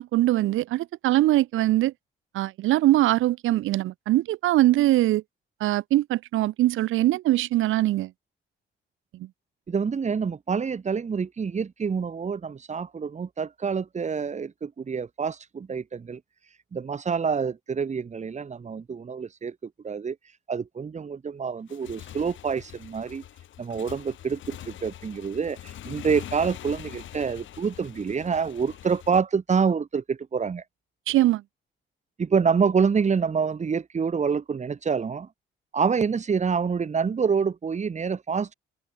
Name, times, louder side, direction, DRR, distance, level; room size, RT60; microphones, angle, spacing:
voice 1, 0.0-1.9 2.3-5.2 5.6-8.1 9.2-9.3 31.1-31.4, right 15 dB, 85° right, 1.4 m, -22 dB
voice 2, 9.7-16.2 16.7-19.6 19.8-20.2 20.5-23.2 23.6-30.6 32.2-35.3 35.7-38.5, right 6 dB, 35° right, 1.9 m, -27 dB
Motorcycle / Engine, 21.6-29.2, left 12 dB, 75° left, 3.8 m, -43 dB
open air
cardioid pair, 90°, 20 cm